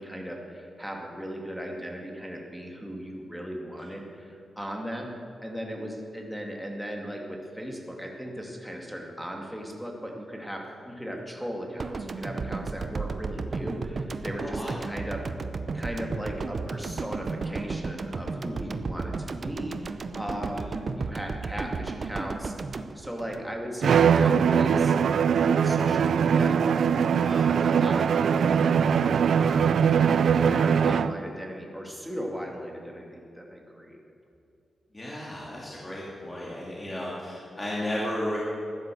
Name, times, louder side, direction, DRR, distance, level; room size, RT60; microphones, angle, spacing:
voice 1, 0.0-15.2 15.7-25.0 25.4-26.6 27.2-29.8 30.4-34.0, equal, ahead, 1 dB, 2.4 m, -37 dB
sound 1, 11.8-24.0, right 4 dB, 45° right, 0.7 m, -34 dB
voice 2, 14.4-14.7 20.5-20.6 34.9-38.4, left 1 dB, 20° left, -5 dB, 2.7 m, -33 dB
Bowed string instrument, 23.8-31.2, right 7 dB, 75° right, 0.4 m, -22 dB
15.0 x 10.5 x 7.6 m, 2.6 s
wide cardioid pair, 120°, 0 cm